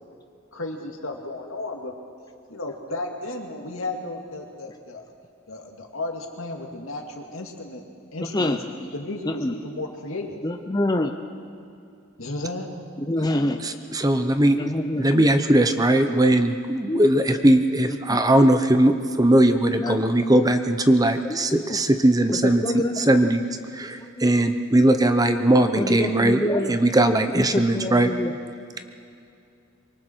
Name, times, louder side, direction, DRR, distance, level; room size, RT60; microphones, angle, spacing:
voice 1, 0.5-1.9 2.5-5.1 5.5-7.8 8.1-8.6 8.9-10.4 12.2-12.7, left 2 dB, 80° left, 2 dB, 2.4 m, -33 dB
voice 2, 10.4-11.1 13.1-13.6 14.5-15.3 16.9-17.0 18.1-18.2 19.8-20.0 21.5-21.8 22.3-23.0 25.8-26.8 27.3-28.3, left 1 dB, 20° left, 5 dB, 0.7 m, -26 dB
voice 3, 13.6-14.6 15.0-22.6 23.0-23.5 23.7-26.4 26.7-28.1, right 1 dB, 20° right, 8 dB, 0.8 m, -19 dB
25.5 x 23.5 x 4.6 m, 2.5 s
head